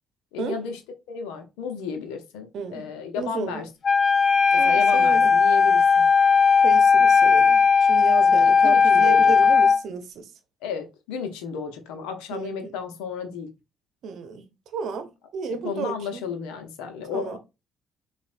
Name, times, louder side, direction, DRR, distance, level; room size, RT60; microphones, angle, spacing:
voice 1, 0.3-0.8 1.1-3.7 4.5-6.1 8.3-9.5 10.6-13.5 15.6-17.4, left 6 dB, 70° left, 0.8 m, -33 dB
voice 2, 2.5-2.9 3.2-3.6 4.6-5.4 6.6-10.3 12.3-12.7 14.0-14.5 14.7-16.2 17.1-17.4, right 5 dB, 60° right, 0.9 m, -33 dB
Wind instrument woodwind instrument, 3.8-9.8, left 5 dB, 45° left, 0.4 m, -17 dB
7.0 x 2.5 x 2.5 m
hypercardioid pair, 45°, 0 cm